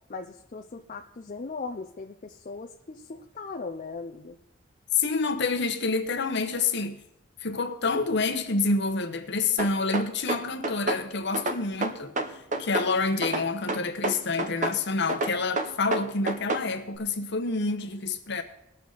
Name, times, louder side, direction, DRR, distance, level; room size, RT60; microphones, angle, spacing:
voice 1, 0.1-4.4, left 4 dB, 40° left, 0.5 m, -38 dB
voice 2, 4.9-7.0 7.4-18.4, left 4 dB, 55° left, 1.1 m, -28 dB
sound 1, 9.6-11.0 11.3-12.9 13.2-14.8 15.1-16.7, right 2 dB, 40° right, 0.8 m, -28 dB
19.5 x 6.7 x 4.0 m
head